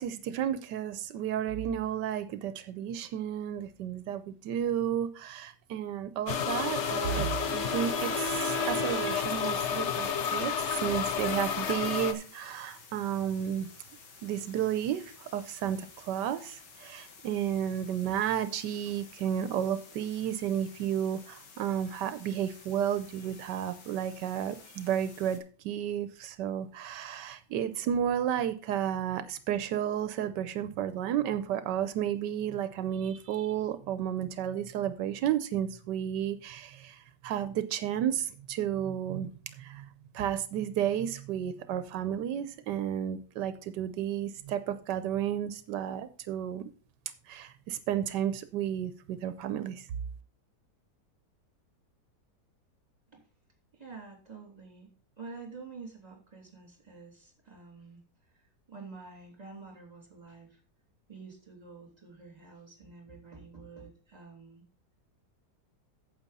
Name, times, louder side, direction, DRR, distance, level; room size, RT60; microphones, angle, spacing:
voice 1, 0.0-13.7 14.2-39.9 40.1-46.7 47.3-49.9, right 10 dB, 85° right, 12 dB, 1.3 m, -32 dB
sound 1, 6.3-12.1, left 7 dB, 50° left, 0.9 m, -31 dB
Bowed string instrument, 6.5-9.5, right 2 dB, 40° right, 0.9 m, -38 dB
sound 2, 6.8-25.4, left 5 dB, 85° left, 2.3 m, -53 dB
voice 2, 53.7-54.9 55.2-60.6 61.1-64.6, right 4 dB, 25° right, 1 dB, 3.2 m, -48 dB
9.1 x 7.6 x 4.1 m, 0.38 s
omnidirectional pair, 1.8 m